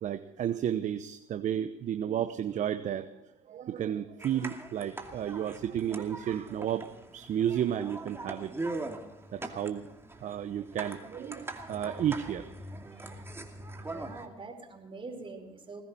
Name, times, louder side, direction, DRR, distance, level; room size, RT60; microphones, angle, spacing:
voice 1, 0.0-3.1 3.5-6.9 7.1-8.5 9.3-9.9 10.2-12.5, right 10 dB, 50° right, 10 dB, 1.0 m, -32 dB
sound 1, 4.2-14.3, right 2 dB, 15° right, 2.5 m, -42 dB
voice 2, 13.7-15.8, right 3 dB, 35° right, 4 dB, 4.8 m, -44 dB
20.5 x 15.5 x 4.4 m, 0.85 s
hypercardioid pair, 65°, 16 cm